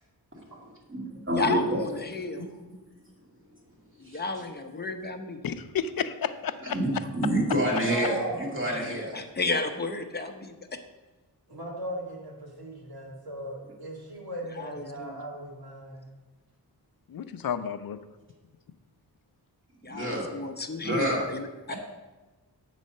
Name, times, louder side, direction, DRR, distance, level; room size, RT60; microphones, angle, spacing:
voice 1, 0.3-1.8 2.1-2.7 4.0-4.2 6.6-9.1 19.8-20.3 20.8-21.2 21.7-21.8, right 1 dB, 30° right, -3 dB, 2.1 m, -29 dB
voice 2, 1.3-2.4 4.0-5.4 8.8-10.5 14.6-15.2 19.8-21.7, left 3 dB, 25° left, 5 dB, 0.7 m, -33 dB
voice 3, 5.4-6.8 17.1-18.0, left 8 dB, 60° left, 11 dB, 0.5 m, -31 dB
voice 4, 7.8-8.5 11.5-16.0, right 1 dB, 60° right, -3 dB, 2.3 m, -37 dB
7.6 x 4.2 x 6.4 m, 1.2 s
wide cardioid pair, 85°, 41 cm